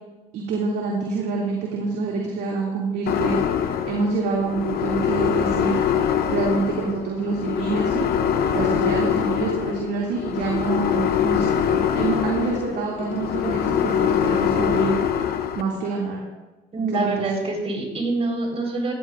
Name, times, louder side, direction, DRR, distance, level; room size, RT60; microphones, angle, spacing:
voice 1, 0.3-3.4 3.9-5.8 6.3-8.1 8.5-15.3 15.5-16.2 16.9-17.2, right 4 dB, 80° right, -3 dB, 2.6 m, -26 dB
sound 1, 3.1-15.6, left 8 dB, 65° left, 0.9 m, -23 dB
voice 2, 16.7-18.9, right 3 dB, 35° right, 1 dB, 4.4 m, -25 dB
17.5 x 14.5 x 2.5 m, 1.1 s
cardioid pair, 110°, 17 cm